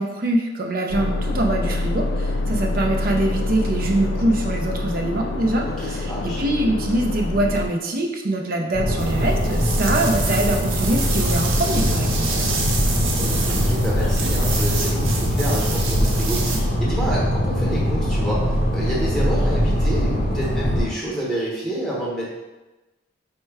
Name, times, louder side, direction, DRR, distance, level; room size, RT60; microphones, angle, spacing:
voice 1, 0.0-12.3, right 1 dB, 45° right, 1 dB, 0.5 m, -23 dB
sound 1, 0.9-7.7, left 2 dB, 70° left, 0.3 m, -26 dB
voice 2, 5.6-6.4 12.0-12.7 12.9-18.4 18.7-22.3, right 1 dB, ahead, -6 dB, 0.9 m, -29 dB
sound 2, 8.7-20.9, equal, 50° left, 0.7 m, -22 dB
sound 3, 9.0-16.6, right 4 dB, 90° right, 0.7 m, -29 dB
4.4 x 2.2 x 4.6 m, 1.1 s
head